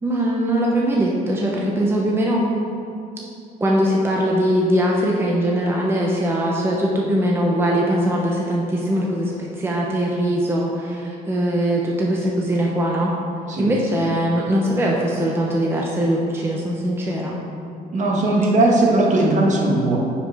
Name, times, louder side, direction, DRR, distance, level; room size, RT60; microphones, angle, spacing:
voice 1, 0.0-2.5 3.6-13.1 13.6-17.4, equal, 15° right, -3 dB, 0.8 m, -21 dB
voice 2, 17.9-20.0, right 2 dB, 45° right, -2 dB, 1.4 m, -18 dB
9.5 x 5.2 x 3.5 m, 2.6 s
cardioid pair, 110°, 17 cm